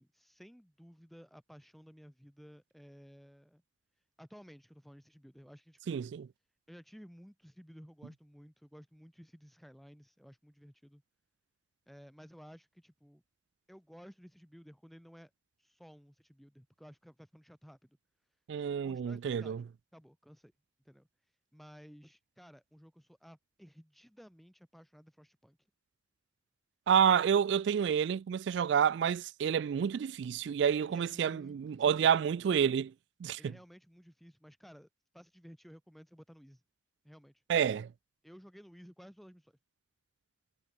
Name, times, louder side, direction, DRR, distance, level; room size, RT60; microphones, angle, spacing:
voice 1, 0.0-3.6 4.2-6.0 6.7-11.0 11.9-13.2 13.7-15.3 15.6-18.0 18.8-19.6 19.9-20.5 20.8-25.6 30.8-32.1 33.4-34.9 35.1-36.6 37.0-37.4 38.2-39.5, equal, ahead, 4.2 m, -55 dB
voice 2, 5.9-6.3 18.5-19.6 26.9-32.9 33.2-33.4 37.5-37.9, right 8 dB, 65° right, 0.3 m, -29 dB
head